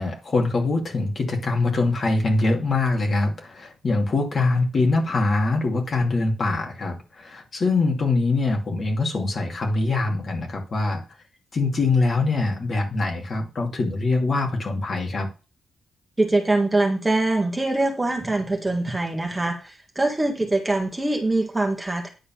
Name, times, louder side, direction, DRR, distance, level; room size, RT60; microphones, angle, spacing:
voice 1, 0.0-11.0 11.5-15.3, left 3 dB, 40° left, 2.5 m, -23 dB
voice 2, 16.2-22.1, right 2 dB, 15° right, 1.8 m, -23 dB
10.0 x 4.2 x 7.2 m
wide cardioid pair, 145°, 0 cm